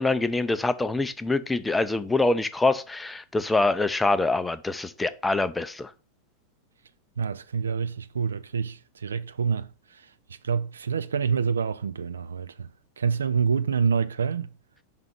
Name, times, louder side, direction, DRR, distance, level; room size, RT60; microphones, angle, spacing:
voice 1, 0.0-5.9, left 2 dB, 10° left, 0.4 m, -25 dB
voice 2, 7.2-12.7 13.0-14.5, right 6 dB, 70° right, 0.3 m, -27 dB
5.7 x 3.7 x 5.3 m
figure-of-eight pair, 90°, 0 cm